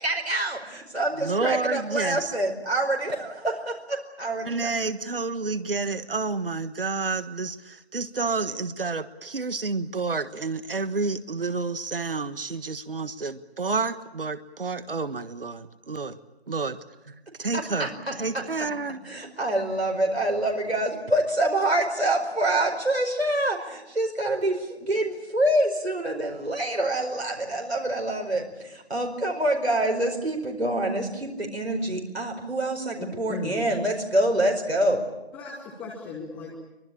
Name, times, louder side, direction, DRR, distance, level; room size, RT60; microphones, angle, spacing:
voice 1, 0.0-4.7 17.5-18.4 19.0-35.0, right 1 dB, 80° right, 2 dB, 5.0 m, -26 dB
voice 2, 1.2-2.3 4.4-16.2 16.5-16.8 17.4-19.0, right 4 dB, 60° right, 13 dB, 1.5 m, -29 dB
voice 3, 33.0-33.6 35.3-36.6, left 2 dB, 5° left, -3 dB, 1.1 m, -36 dB
24.0 x 23.0 x 8.7 m, 1.0 s
figure-of-eight pair, 155°, 32 cm